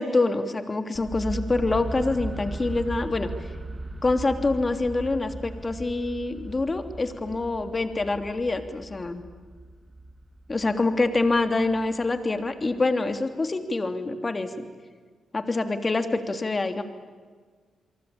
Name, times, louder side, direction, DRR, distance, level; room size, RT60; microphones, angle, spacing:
voice 1, 0.0-3.3 4.0-9.2 10.5-14.7 15.3-16.8, left 3 dB, 35° left, 8 dB, 3.1 m, -26 dB
sound 1, 0.9-12.8, right 2 dB, 25° right, 2.1 m, -38 dB
27.5 x 23.5 x 8.7 m, 1.5 s
hypercardioid pair, 40°, 0 cm